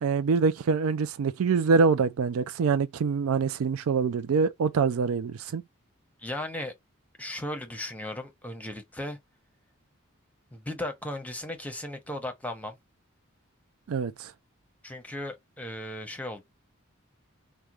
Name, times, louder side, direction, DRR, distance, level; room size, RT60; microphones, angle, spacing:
voice 1, 0.0-5.6 13.9-14.3, right 5 dB, 85° right, 0.4 m, -25 dB
voice 2, 6.2-6.7 7.2-9.2 10.5-12.8 14.8-16.4, left 1 dB, 5° left, 0.9 m, -36 dB
4.9 x 2.2 x 3.0 m
head